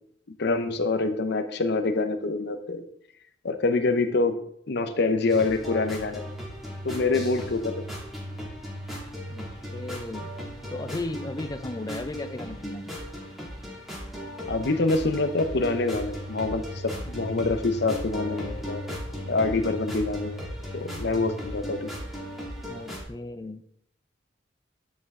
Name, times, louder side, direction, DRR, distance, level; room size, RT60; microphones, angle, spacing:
voice 1, 0.4-2.9 3.4-4.4 4.7-6.2 6.8-7.7 14.5-18.8 19.3-20.4 20.7-21.9, left 3 dB, 60° left, 8 dB, 0.7 m, -26 dB
sound 1, 5.3-23.0, equal, ahead, 2.1 m, -37 dB
voice 2, 9.3-10.3 10.7-12.9 22.7-23.6, left 2 dB, 20° left, 9 dB, 0.5 m, -36 dB
9.7 x 5.3 x 3.6 m, 0.71 s
head